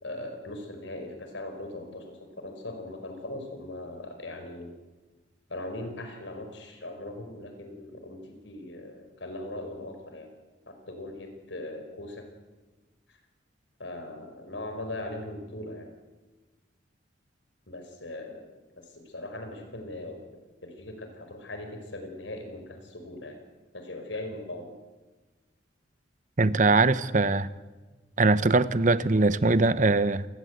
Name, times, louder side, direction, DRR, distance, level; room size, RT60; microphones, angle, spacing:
voice 1, 0.0-4.7 5.5-10.3 10.7-12.3 13.1-13.2 13.8-15.9 17.7-18.5 18.8-20.2 20.6-23.4 23.7-24.7, left 1 dB, 85° left, 5 dB, 5.1 m, -39 dB
voice 2, 26.4-27.5 28.2-30.3, right 3 dB, 45° right, 15 dB, 0.9 m, -22 dB
28.0 x 20.0 x 8.1 m, 1.2 s
head